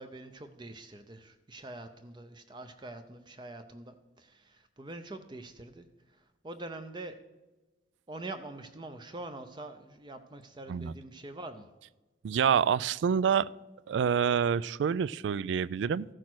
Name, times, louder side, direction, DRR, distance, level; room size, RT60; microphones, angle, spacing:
voice 1, 0.0-7.2 8.1-11.7, right 2 dB, 25° right, 8 dB, 0.5 m, -45 dB
voice 2, 12.2-13.5 13.9-16.1, right 7 dB, 80° right, 22 dB, 0.3 m, -27 dB
14.0 x 6.4 x 6.1 m, 1.1 s
head